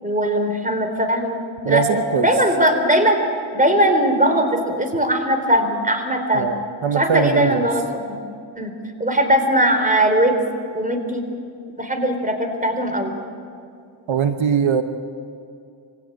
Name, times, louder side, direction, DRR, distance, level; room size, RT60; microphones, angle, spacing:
voice 1, 0.0-3.2 3.5-6.5 6.9-8.2 8.6-8.7 9.0-10.4 10.7-11.3 11.8-13.1, right 1 dB, 15° right, 6 dB, 4.0 m, -20 dB
voice 2, 1.6-2.3 6.3-6.6 6.8-7.7 14.1-14.8, right 7 dB, 85° right, 9 dB, 1.1 m, -21 dB
25.0 x 16.5 x 9.0 m, 2.4 s
cardioid pair, 55°, 46 cm